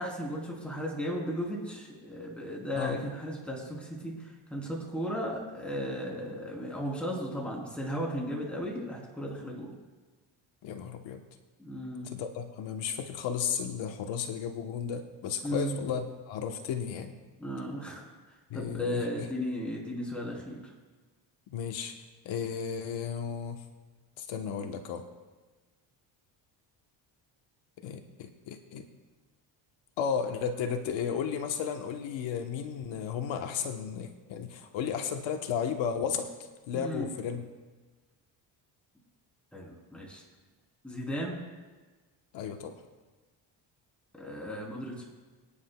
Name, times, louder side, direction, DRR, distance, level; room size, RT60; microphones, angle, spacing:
voice 1, 0.0-9.7 11.6-12.1 15.4-15.8 17.4-20.7 36.7-37.1 39.5-40.2 40.8-41.4 44.1-45.0, equal, 5° left, -3 dB, 3.1 m, -35 dB
voice 2, 10.6-11.2 12.0-17.1 18.5-19.3 21.5-21.9 22.2-23.6 24.2-25.0 27.8-28.9 30.0-36.3 36.7-37.4 42.3-42.8, left 7 dB, 80° left, 5 dB, 1.1 m, -34 dB
24.5 x 9.8 x 2.2 m, 1.3 s
cardioid pair, 150°, 46 cm